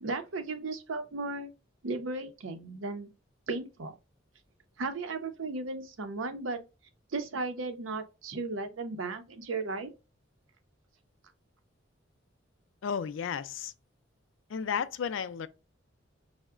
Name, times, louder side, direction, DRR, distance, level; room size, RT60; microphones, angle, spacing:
voice 1, 0.0-1.5 1.8-3.1 3.5-3.9 4.8-6.6 7.1-9.9, right 3 dB, 90° right, 0.6 m, -35 dB
voice 2, 12.8-13.7 14.5-15.5, left 7 dB, 70° left, 0.4 m, -33 dB
4.5 x 2.1 x 2.3 m
head